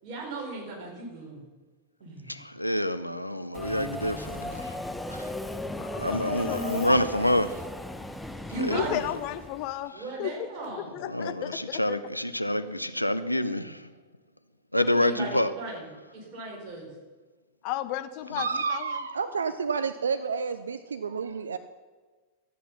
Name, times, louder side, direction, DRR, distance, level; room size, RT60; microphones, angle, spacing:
voice 1, 0.0-1.4 2.0-2.4 5.0-5.8 8.5-9.1 9.9-11.0 14.7-15.9 16.1-16.9, right 2 dB, 40° right, 4.6 m, -37 dB
voice 2, 2.3-4.8 5.1-5.3 6.0-7.6 8.6-8.9 11.1-13.9 14.7-15.5 18.3-18.4, left 1 dB, 85° left, 0.6 m, -27 dB
Subway metro underground, 3.5-9.8, left 1 dB, 5° left, 0.7 m, -36 dB
voice 3, 5.7-7.1 8.7-9.9 10.2-12.0 17.6-18.9, left 13 dB, 45° left, 0.6 m, -34 dB
voice 4, 18.4-21.6, right 5 dB, 70° right, 0.5 m, -30 dB
13.5 x 8.5 x 5.7 m
figure-of-eight pair, 90°, 0 cm